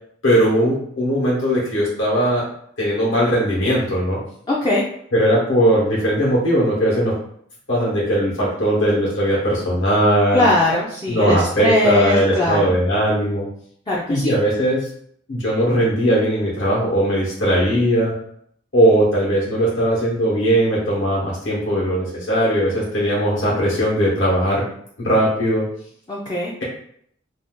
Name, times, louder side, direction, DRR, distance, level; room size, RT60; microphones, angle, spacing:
voice 1, 0.2-2.4 2.8-4.2 5.1-7.1 7.7-10.5 11.1-13.5 14.1-14.8 15.3-18.1 18.7-24.6 25.0-25.6, equal, 70° left, -6 dB, 1.0 m, -19 dB
voice 2, 4.5-4.8 10.3-12.7 13.9-14.3 26.1-26.5, left 1 dB, 20° left, -4 dB, 0.4 m, -20 dB
2.6 x 2.3 x 3.6 m, 0.66 s
head